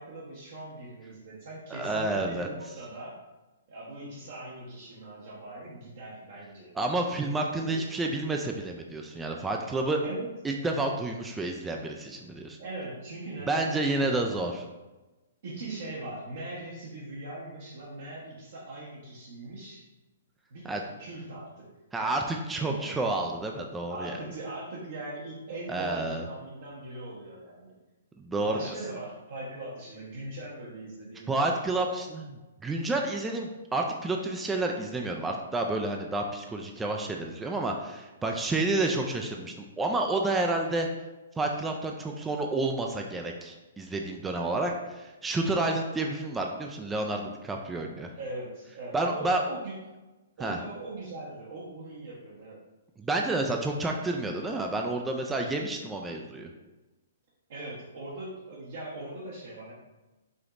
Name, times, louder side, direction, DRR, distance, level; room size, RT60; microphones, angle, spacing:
voice 1, 0.0-3.2 3.7-6.7 7.5-7.8 10.0-10.3 12.6-14.1 15.4-19.8 20.5-21.7 22.0-23.0 23.9-27.8 28.4-32.0 48.1-49.8 50.4-52.6 57.5-59.7, right 2 dB, 65° right, -6 dB, 1.0 m, -41 dB
voice 2, 1.7-2.5 6.8-10.0 10.4-12.6 13.5-14.6 20.6-20.8 21.9-24.2 25.7-26.3 28.2-28.7 31.3-32.3 32.6-40.9 41.4-48.1 48.9-49.4 50.4-50.6 53.0-56.5, right 2 dB, 10° right, 1 dB, 0.3 m, -30 dB
5.1 x 2.8 x 2.5 m, 1.1 s
hypercardioid pair, 135°, 0 cm